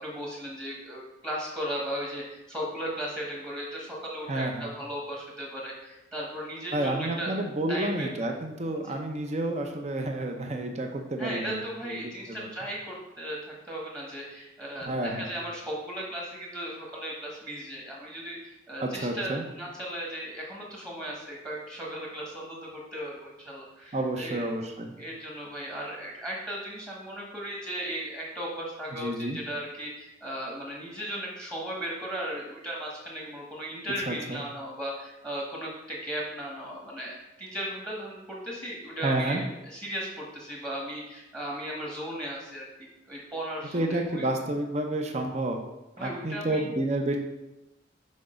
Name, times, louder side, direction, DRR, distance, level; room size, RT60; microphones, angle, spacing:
voice 1, 0.0-7.4 7.7-8.1 8.8-8.9 11.2-24.5 25.0-44.3 46.0-46.6, equal, 15° right, -3 dB, 1.3 m, -36 dB
voice 2, 4.3-4.7 6.7-11.6 11.8-12.5 14.9-15.3 18.8-19.4 23.9-24.9 29.0-29.4 34.1-34.4 39.0-39.4 43.7-45.6 46.0-47.2, right 1 dB, 35° right, 3 dB, 0.7 m, -30 dB
6.4 x 4.8 x 5.1 m, 0.97 s
head